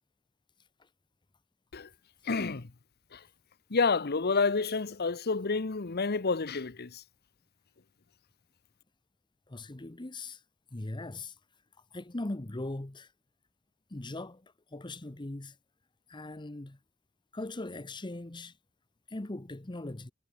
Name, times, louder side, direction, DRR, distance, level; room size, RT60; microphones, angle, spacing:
voice 1, 2.2-2.7 3.1-3.2 3.7-7.0, left 4 dB, 45° left, 0.9 m, -29 dB
voice 2, 9.5-10.4 10.7-11.4 11.9-13.1 13.9-15.6 16.1-16.8 17.3-18.5 19.1-20.1, left 2 dB, 20° left, 0.9 m, -40 dB
head